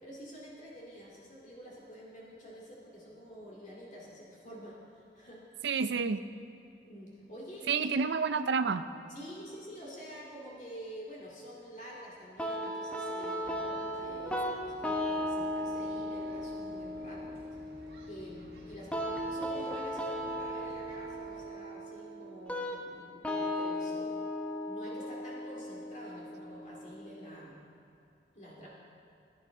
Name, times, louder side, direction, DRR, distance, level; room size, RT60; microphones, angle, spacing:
voice 1, 0.0-5.4 6.9-7.9 9.1-17.3 18.1-24.2 24.7-27.6 28.3-28.7, equal, 40° left, -5 dB, 2.3 m, -48 dB
voice 2, 5.6-6.2 7.7-8.8, right 5 dB, 80° right, 11 dB, 0.5 m, -29 dB
sound 1, 12.4-27.3, left 1 dB, 5° left, 0.8 m, -37 dB
sound 2, 13.4-21.5, right 1 dB, 60° right, 1.7 m, -55 dB
16.5 x 10.5 x 3.8 m, 2.7 s
head